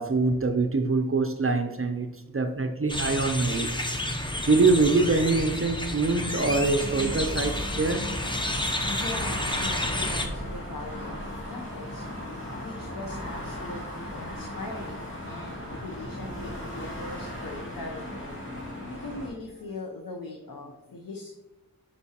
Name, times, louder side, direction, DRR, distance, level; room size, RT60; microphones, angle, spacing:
voice 1, 0.0-3.8 4.5-8.1, right 3 dB, 40° right, 0.5 m, -24 dB
sound 1, 2.9-10.3, left 1 dB, 15° left, 0.6 m, -30 dB
sound 2, 6.0-19.3, left 1 dB, 35° left, 2.3 m, -37 dB
voice 2, 8.9-18.4 18.9-21.3, left 2 dB, 75° left, 0.7 m, -40 dB
8.4 x 5.2 x 2.8 m
wide cardioid pair, 60°, 35 cm